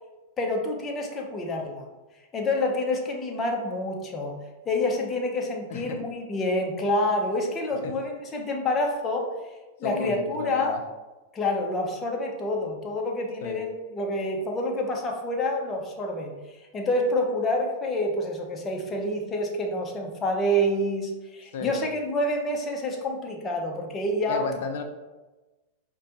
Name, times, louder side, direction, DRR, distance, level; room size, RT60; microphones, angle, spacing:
voice 1, 0.4-1.9 2.3-4.4 4.7-9.3 9.8-10.8 11.3-16.3 16.7-24.4, left 1 dB, 25° left, 1 dB, 0.7 m, -27 dB
voice 2, 9.8-10.8 13.4-13.6 21.5-21.9 24.3-24.8, left 5 dB, 65° left, 6 dB, 0.5 m, -33 dB
4.9 x 2.2 x 2.9 m, 1.1 s
hypercardioid pair, 110°, 0 cm